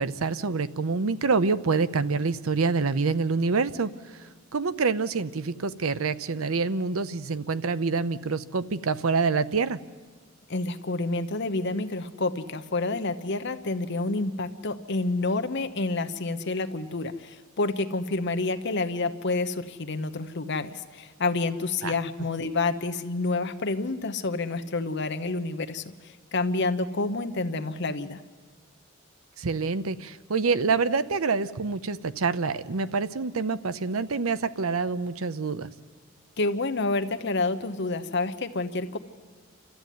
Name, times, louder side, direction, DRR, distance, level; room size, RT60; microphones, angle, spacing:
voice 1, 0.0-3.9 4.5-9.8 21.8-21.9 29.4-35.7, right 4 dB, 85° right, 14 dB, 0.7 m, -26 dB
voice 2, 10.5-28.2 36.4-39.0, left 3 dB, 55° left, 9 dB, 1.0 m, -29 dB
29.0 x 13.0 x 9.3 m, 1.5 s
head